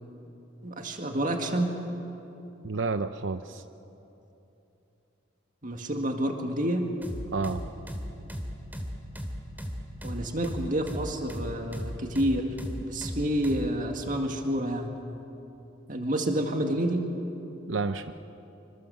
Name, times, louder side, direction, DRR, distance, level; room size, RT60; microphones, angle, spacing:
voice 1, 0.6-1.7 5.6-6.9 10.0-12.5 12.8-14.9 15.9-17.1, right 1 dB, 40° right, 3 dB, 2.0 m, -29 dB
voice 2, 2.6-3.6 7.3-7.6 17.7-18.1, right 4 dB, 75° right, 10 dB, 0.7 m, -30 dB
sound 1, 7.0-13.7, equal, 10° right, 2.6 m, -36 dB
27.0 x 26.0 x 7.8 m, 3.0 s
head